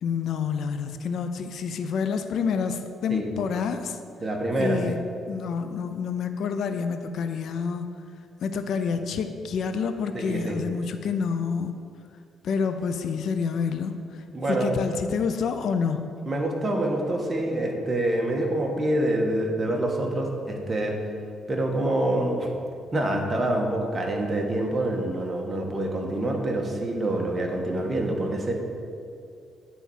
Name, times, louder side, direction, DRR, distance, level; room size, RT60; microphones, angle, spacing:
voice 1, 0.0-4.0 4.6-8.0 8.4-11.7 12.4-16.1, left 6 dB, 70° left, 8 dB, 0.5 m, -28 dB
voice 2, 4.2-5.0 10.1-10.6 14.3-14.7 16.3-21.0 21.5-22.5 22.9-28.5, right 1 dB, 25° right, 1 dB, 1.5 m, -26 dB
9.4 x 4.1 x 7.3 m, 2.4 s
cardioid pair, 90°, 0 cm